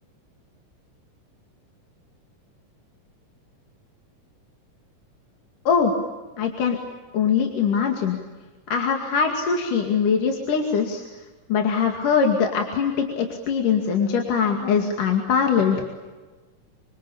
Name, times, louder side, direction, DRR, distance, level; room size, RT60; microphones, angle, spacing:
voice 1, 6.4-6.8 7.1-8.2 8.7-11.0 11.5-15.9, left 6 dB, 70° left, 3 dB, 3.9 m, -22 dB
27.0 x 25.5 x 8.5 m, 1.3 s
omnidirectional pair, 3.8 m